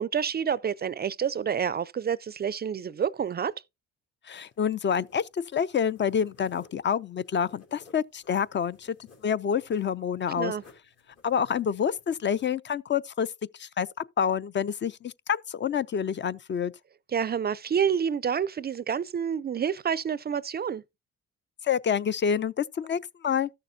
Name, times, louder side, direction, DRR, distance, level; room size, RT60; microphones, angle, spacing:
voice 1, 0.0-3.5 10.4-10.6 17.1-20.8, right 7 dB, 35° right, 0.4 m, -28 dB
voice 2, 4.3-9.0 9.2-10.5 11.2-13.3 13.6-13.9 14.2-16.7 21.6-23.5, left 7 dB, 40° left, 0.4 m, -27 dB
sound 1, 4.4-12.4, left 4 dB, 55° left, 3.3 m, -59 dB
13.5 x 6.6 x 2.7 m
cardioid pair, 90°, 30 cm